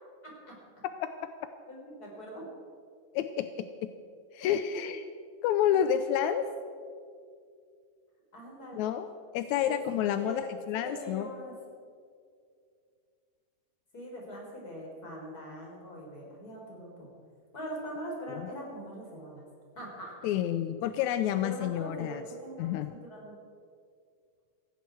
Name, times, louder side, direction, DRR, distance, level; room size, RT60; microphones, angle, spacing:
voice 1, 0.2-0.8 1.7-2.5 4.4-4.6 8.3-8.9 9.6-9.8 10.2-10.4 10.8-11.5 13.9-17.1 17.5-19.4 19.7-20.1 21.4-22.8 23.0-23.3, equal, 25° left, -2 dB, 4.4 m, -42 dB
voice 2, 3.1-3.9 4.3-5.0 5.4-6.5 8.7-11.3 18.3-18.4 20.2-22.2 22.6-22.9, left 10 dB, 80° left, 10 dB, 1.7 m, -29 dB
17.5 x 16.0 x 4.7 m, 2.3 s
omnidirectional pair, 3.9 m